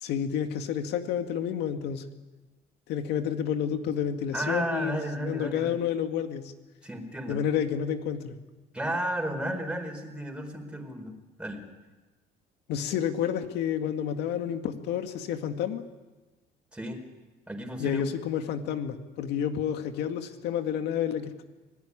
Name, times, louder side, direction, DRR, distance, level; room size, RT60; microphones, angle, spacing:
voice 1, 0.0-2.0 2.9-6.5 7.3-8.4 12.7-15.8 17.8-21.4, left 9 dB, 85° left, 7 dB, 2.1 m, -30 dB
voice 2, 4.3-5.8 6.8-7.4 8.7-11.1 11.4-11.6 16.7-17.0 17.5-18.0, right 1 dB, 5° right, 3 dB, 4.6 m, -33 dB
25.5 x 18.0 x 9.9 m, 1.2 s
cardioid pair, 110°, 17 cm